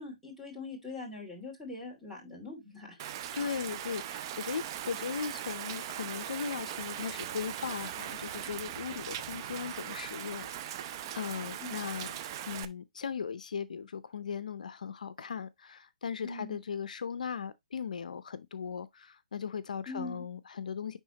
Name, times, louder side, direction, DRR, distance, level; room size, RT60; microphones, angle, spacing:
voice 1, 0.0-3.0 11.6-11.8 16.2-16.6 19.9-20.2, left 3 dB, ahead, 2.6 m, -42 dB
Rain, 3.0-12.6, right 11 dB, 35° right, 0.5 m, -40 dB
voice 2, 3.3-12.1 12.5-21.0, left 6 dB, 75° left, 0.5 m, -38 dB
10.0 x 3.5 x 2.8 m
hypercardioid pair, 155°, 4 cm